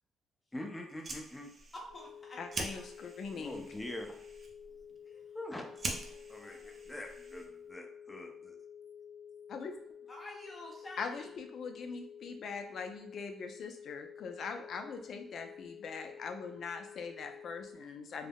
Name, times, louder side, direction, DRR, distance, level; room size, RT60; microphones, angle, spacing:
voice 1, 0.5-1.5 3.3-4.1 5.3-5.7 6.3-8.6, left 1 dB, 10° left, 2 dB, 0.5 m, -44 dB
Fire, 0.8-7.7, right 2 dB, 40° right, 0.5 m, -45 dB
voice 2, 1.7-2.4 2.7-2.8 5.0-5.3 6.1-6.8 10.1-11.4, left 1 dB, 30° left, -2 dB, 0.8 m, -49 dB
sound 1, 1.9-17.7, left 7 dB, 85° left, 0.9 m, -51 dB
voice 3, 2.4-3.7 9.5-9.7 11.0-18.3, left 5 dB, 60° left, 6 dB, 0.4 m, -42 dB
3.4 x 2.0 x 2.3 m, 0.72 s
cardioid pair, 90°, 0 cm